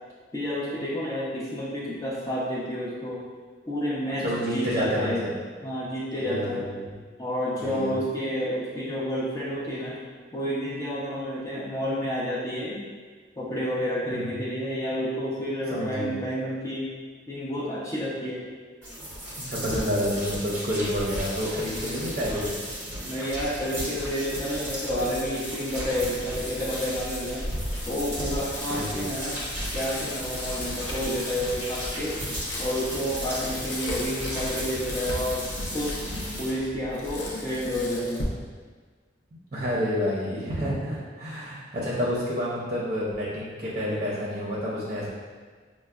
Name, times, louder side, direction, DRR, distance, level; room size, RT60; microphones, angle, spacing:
voice 1, 0.3-3.3 3.7-5.2 5.6-6.7 7.2-10.0 10.3-12.8 13.4-16.9 17.3-18.5 23.0-27.5 27.9-29.4 29.7-32.2 32.6-35.5 35.7-36.0 36.4-38.3, equal, 20° left, -7 dB, 0.5 m, -30 dB
voice 2, 4.2-5.4 6.2-6.9 7.6-8.0 14.1-14.5 15.7-16.2 19.4-22.7 28.7-29.0 39.5-45.1, equal, 40° right, -6 dB, 0.6 m, -29 dB
sound 1, 18.8-36.5, equal, 10° right, 0.9 m, -35 dB
Bicycle, 25.9-38.2, left 1 dB, 85° left, 0.6 m, -36 dB
5.4 x 2.0 x 2.3 m, 1.5 s
head